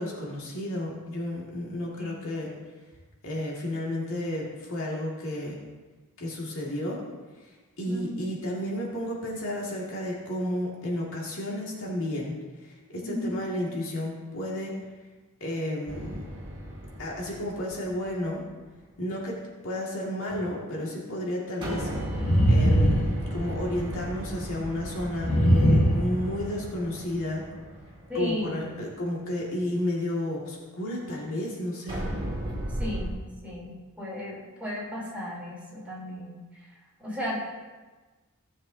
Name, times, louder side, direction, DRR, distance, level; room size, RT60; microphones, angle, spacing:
voice 1, 0.0-2.5 3.2-5.6 6.2-7.0 7.4-7.5 7.8-14.8 15.4-16.2 17.0-18.4 19.0-21.9 22.5-25.4 25.9-27.5 28.1-32.0, left 1 dB, 65° left, -3 dB, 2.0 m, -32 dB
voice 2, 7.9-8.2 13.0-13.4 28.1-28.7 32.2-32.3 32.8-33.2 33.4-33.7 34.0-36.4 37.0-37.5, left 1 dB, 5° right, -7 dB, 3.4 m, -34 dB
sound 1, 15.9-18.4 21.6-28.8 31.9-33.1, right 1 dB, 25° right, 2.1 m, -35 dB
sound 2, 20.3-20.4 22.1-23.7 25.2-26.6, equal, 85° left, 1.5 m, -21 dB
16.5 x 7.2 x 2.7 m, 1.3 s
head